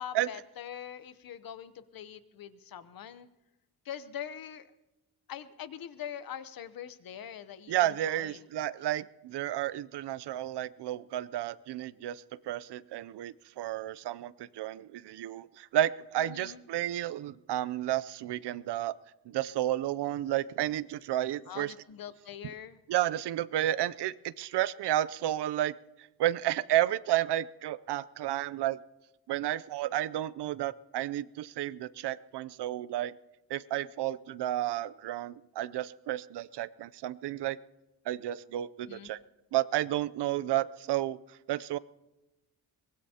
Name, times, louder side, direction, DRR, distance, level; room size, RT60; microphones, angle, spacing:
voice 1, 0.0-3.3 3.8-4.7 5.3-8.5 16.2-16.6 21.4-22.8 38.8-39.1, left 9 dB, 60° left, 13 dB, 0.8 m, -43 dB
voice 2, 7.7-18.9 19.3-21.7 22.9-25.7 26.2-28.8 29.3-33.1 33.5-37.6 38.1-39.2 39.5-41.2 41.5-41.8, right 13 dB, 85° right, 18 dB, 0.6 m, -32 dB
23.0 x 19.5 x 2.8 m, 1.0 s
wide cardioid pair, 165°, 40 cm